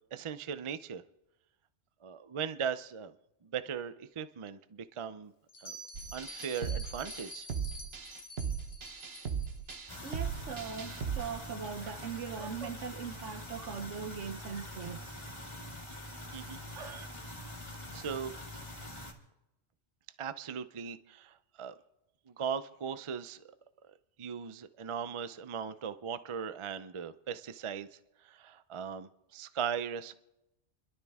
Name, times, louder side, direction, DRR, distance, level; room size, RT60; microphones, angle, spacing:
voice 1, 0.1-1.0 2.0-3.1 3.4-5.3 5.6-5.8 6.1-7.5 16.3-16.6 17.9-18.3 20.2-21.7 22.3-23.4 23.8-27.9 28.2-30.1, right 7 dB, 40° right, 0.5 m, -38 dB
Bell, 5.5-10.1, left 1 dB, 55° left, 1.6 m, -48 dB
sound 1, 5.9-11.3, right 7 dB, 55° right, 1.3 m, -38 dB
sound 2, 9.9-19.1, left 1 dB, 25° left, 2.2 m, -45 dB
voice 2, 10.0-15.3 16.7-17.1, right 6 dB, 75° right, 1.3 m, -40 dB
29.5 x 12.0 x 3.6 m
omnidirectional pair, 1.2 m